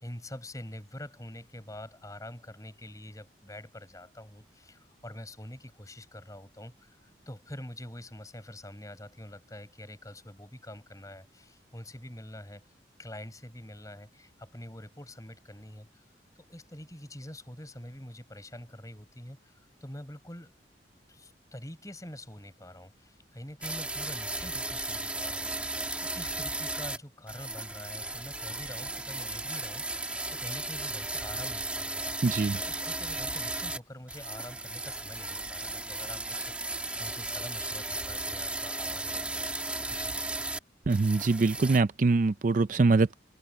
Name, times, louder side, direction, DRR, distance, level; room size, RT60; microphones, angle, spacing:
voice 1, 0.0-12.7 13.0-16.0 16.4-20.5 21.1-32.2 32.5-39.4 39.9-40.1, left 1 dB, 20° left, 5.3 m, -45 dB
sound 1, 23.6-27.0 27.3-33.8 34.1-40.6 40.9-41.8, right 2 dB, 5° right, 1.6 m, -35 dB
voice 2, 32.2-32.6 40.9-43.1, right 3 dB, 45° right, 0.4 m, -24 dB
open air
head